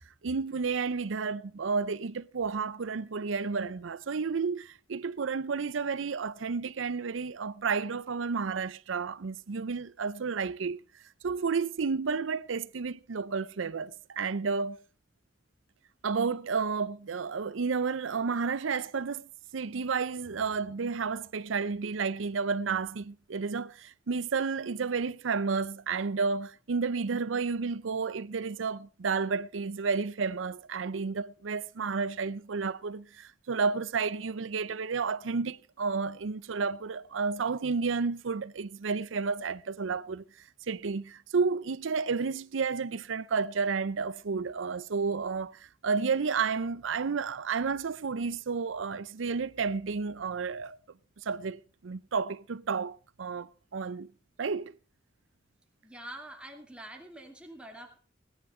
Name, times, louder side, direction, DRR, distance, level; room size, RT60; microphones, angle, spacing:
voice 1, 0.2-10.8 11.2-14.8 16.0-40.2 40.7-50.8 51.2-54.1 54.4-54.7, right 5 dB, 85° right, 0.6 m, -31 dB
voice 2, 55.8-58.0, right 1 dB, 5° right, 2.5 m, -45 dB
18.0 x 10.5 x 4.3 m
head